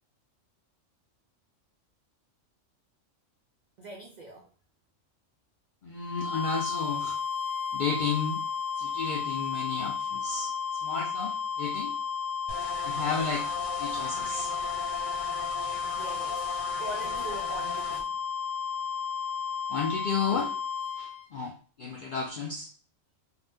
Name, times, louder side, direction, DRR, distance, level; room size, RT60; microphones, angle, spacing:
voice 1, 3.8-4.5 15.9-18.2, right 2 dB, 70° right, 0.4 m, -42 dB
voice 2, 5.8-7.2 7.7-8.5 8.8-10.5 10.8-11.9 12.8-13.5 13.8-14.5 19.7-20.5 21.0-21.5 21.8-22.7, left 5 dB, 70° left, 0.4 m, -32 dB
sound 1, 6.0-21.3, left 7 dB, 50° left, 1.1 m, -33 dB
sound 2, 12.5-18.0, left 3 dB, 85° left, 1.2 m, -38 dB
2.7 x 2.1 x 3.4 m
omnidirectional pair, 1.3 m